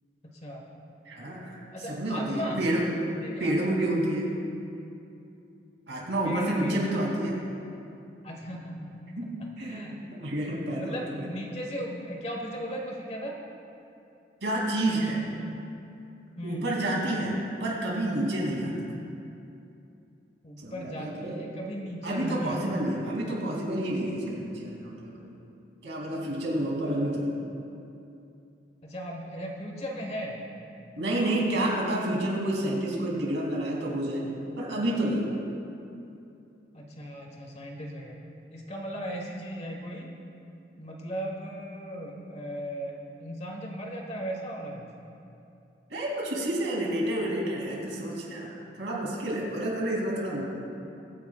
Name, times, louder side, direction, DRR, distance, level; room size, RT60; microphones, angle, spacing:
voice 1, 0.2-0.7 1.7-2.6 3.2-3.9 6.2-6.8 8.2-8.9 9.4-10.0 10.8-13.3 16.4-16.7 18.5-18.8 20.4-22.8 26.8-27.0 28.8-30.4 36.7-38.2 38.5-40.1 40.8-44.9, equal, 35° left, 0 dB, 1.3 m, -37 dB
voice 2, 1.1-1.6 1.9-2.9 3.4-4.3 5.9-7.4 9.1-11.3 14.4-15.2 16.4-18.7 20.6-21.4 22.0-25.4 25.8-27.3 31.0-34.2 34.6-35.4 45.9-48.5 48.8-50.4, right 1 dB, 75° right, -3 dB, 2.7 m, -29 dB
22.5 x 9.3 x 2.4 m, 2.7 s
head